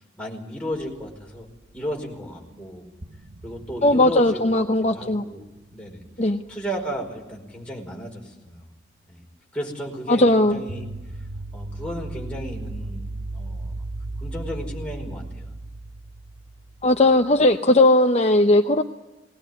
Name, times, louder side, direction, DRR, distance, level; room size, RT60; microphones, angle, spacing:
voice 1, 0.2-1.5 1.7-2.9 3.4-6.0 6.5-8.7 9.1-9.2 9.5-10.9 11.5-13.0 13.3-13.7 14.2-15.5, equal, 5° left, -1 dB, 5.1 m, -34 dB
sound 1, 0.8-2.2 2.5-2.6 3.0-7.4 10.5-17.6, right 2 dB, 55° right, 1.2 m, -37 dB
voice 2, 3.8-5.2 6.2-6.4 10.1-10.6 16.8-18.8, left 1 dB, 35° left, 5 dB, 0.8 m, -18 dB
20.5 x 19.0 x 9.7 m, 1.1 s
head